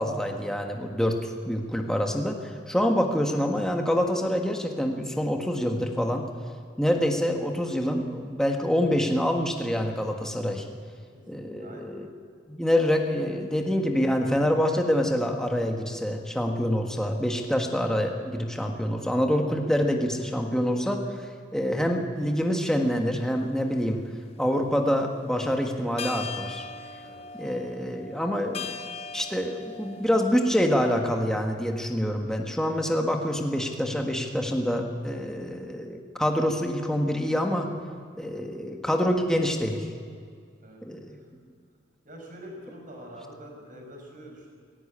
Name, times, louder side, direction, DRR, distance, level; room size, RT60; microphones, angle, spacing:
voice 1, 0.0-6.2 6.8-10.6 11.3-12.1 12.5-21.0 21.5-24.0 24.4-26.6 27.4-28.7 29.1-37.7 38.2-39.8 40.8-41.2, equal, 5° left, 2 dB, 1.6 m, -26 dB
voice 2, 11.6-11.9 27.0-27.2 32.2-32.3 40.6-40.8 41.1-41.2 42.0-44.5, equal, 45° right, 1 dB, 5.9 m, -45 dB
sound 1, 22.2-22.4 23.1-24.1 25.5-25.6 26.0-30.8, left 5 dB, 35° left, 0.8 m, -40 dB
17.5 x 17.5 x 8.7 m, 2.1 s
head